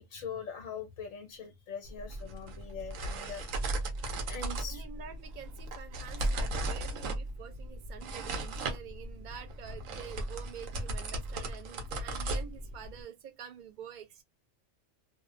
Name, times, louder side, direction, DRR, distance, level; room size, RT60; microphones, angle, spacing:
voice 1, 0.1-3.4 4.3-4.8, left 6 dB, 85° left, 1.1 m, -42 dB
sound 1, 1.9-13.0, right 2 dB, 80° right, 1.0 m, -36 dB
voice 2, 4.7-14.2, right 8 dB, 65° right, 0.4 m, -47 dB
2.6 x 2.0 x 2.4 m
omnidirectional pair, 1.3 m